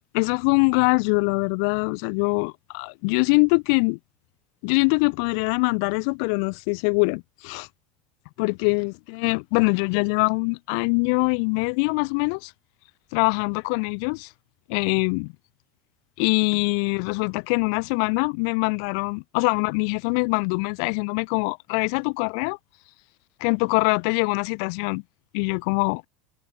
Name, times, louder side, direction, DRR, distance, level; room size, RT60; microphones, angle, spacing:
voice 1, 0.1-4.0 4.6-7.7 8.4-12.5 13.1-14.3 14.7-15.3 16.2-22.6 23.4-25.0 25.3-26.0, left 37 dB, 60° left, 2.8 m, -23 dB
figure-of-eight pair, 75°, 3 cm